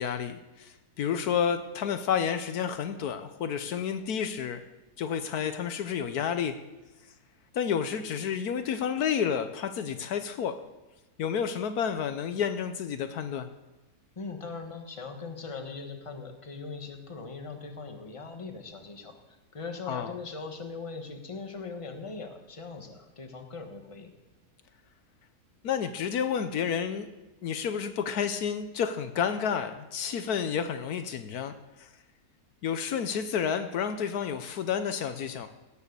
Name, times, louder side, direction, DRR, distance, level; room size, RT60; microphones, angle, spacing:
voice 1, 0.0-4.6 5.0-6.6 7.5-10.6 11.2-13.5 19.9-20.1 25.6-27.1 27.4-31.9 32.6-35.5, left 7 dB, 75° left, 9 dB, 1.3 m, -30 dB
voice 2, 14.2-19.1 19.5-24.1, left 4 dB, 20° left, 4 dB, 1.3 m, -40 dB
17.0 x 7.2 x 6.8 m, 1.1 s
omnidirectional pair, 1.7 m